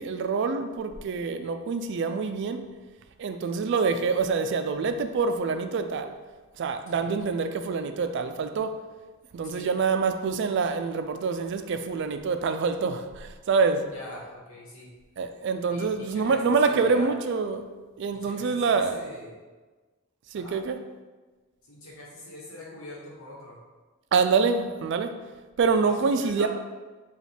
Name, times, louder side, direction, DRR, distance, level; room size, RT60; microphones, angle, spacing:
voice 1, 0.0-2.6 3.2-6.1 6.6-8.8 9.3-13.9 15.2-17.7 18.0-19.0 20.3-20.8 24.1-25.1 25.6-26.5, right 4 dB, 55° right, 8 dB, 0.3 m, -26 dB
voice 2, 13.8-14.9 15.7-17.1 18.1-19.4 20.3-20.6 21.7-23.6 25.8-26.5, left 1 dB, 70° left, -4 dB, 1.2 m, -43 dB
5.0 x 2.4 x 3.3 m, 1.3 s
head